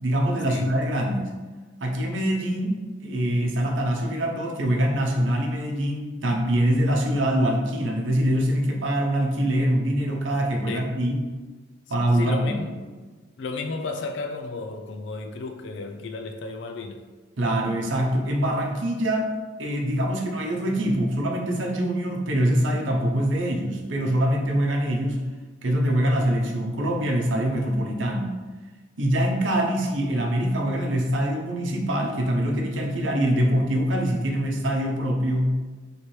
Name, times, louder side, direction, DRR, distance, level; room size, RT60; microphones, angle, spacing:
voice 1, 0.0-1.3 1.8-11.2 11.9-12.6 17.4-19.3 19.6-25.2 25.6-28.4 29.0-35.6, right 1 dB, 80° right, 1 dB, 0.7 m, -24 dB
voice 2, 12.1-12.8 13.4-17.0, left 3 dB, 65° left, 5 dB, 0.4 m, -33 dB
3.2 x 3.2 x 4.4 m, 1.4 s
head